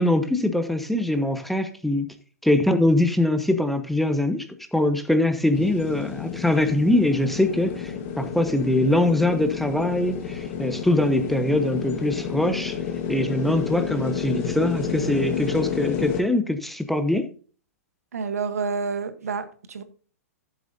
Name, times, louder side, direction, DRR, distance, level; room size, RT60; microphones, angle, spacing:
voice 1, 0.0-2.0 2.4-12.8 13.1-17.3, left 1 dB, ahead, 0.9 m, -23 dB
sound 1, 5.5-16.2, left 8 dB, 45° left, 1.6 m, -30 dB
voice 2, 18.1-19.8, right 5 dB, 70° right, 1.1 m, -29 dB
14.0 x 7.6 x 2.7 m
figure-of-eight pair, 110°, 8 cm